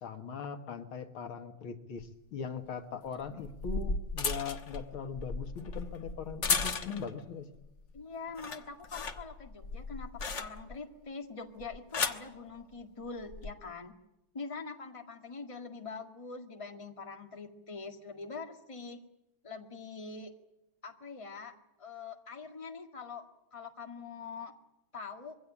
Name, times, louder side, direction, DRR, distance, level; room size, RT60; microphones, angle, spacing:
voice 1, 0.0-7.5, left 6 dB, 90° left, 7 dB, 2.4 m, -40 dB
sound 1, 2.0-2.1 3.2-7.2 7.6-8.0 8.3-10.9 11.6-12.3 13.2-13.5, left 4 dB, 40° left, 1.4 m, -35 dB
voice 2, 7.9-13.9 14.3-19.0 19.4-20.3 20.8-24.5 24.9-25.3, left 4 dB, 15° left, 5 dB, 1.8 m, -44 dB
23.0 x 16.5 x 9.9 m, 0.90 s
omnidirectional pair, 2.2 m